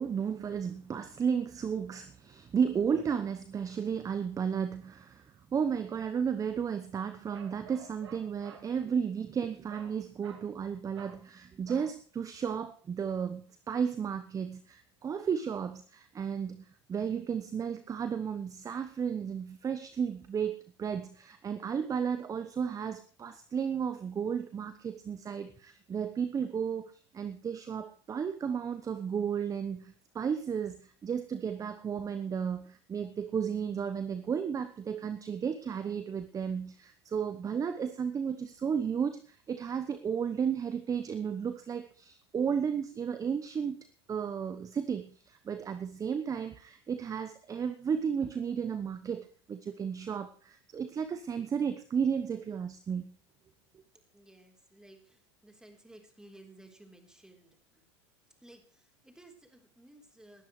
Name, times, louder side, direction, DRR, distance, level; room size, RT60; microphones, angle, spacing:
voice 1, 0.0-5.3 5.5-53.1, right 7 dB, 25° right, 10 dB, 0.9 m, -33 dB
Bark, 7.3-8.7 9.7-10.0 10.2-10.5 10.9-11.2 11.7-12.0, right 6 dB, 80° right, 2.2 m, -51 dB
voice 2, 54.1-57.9 58.4-60.4, right 1 dB, 5° right, 3 dB, 3.7 m, -56 dB
20.0 x 12.0 x 3.2 m, 0.43 s
hypercardioid pair, 85°, 14 cm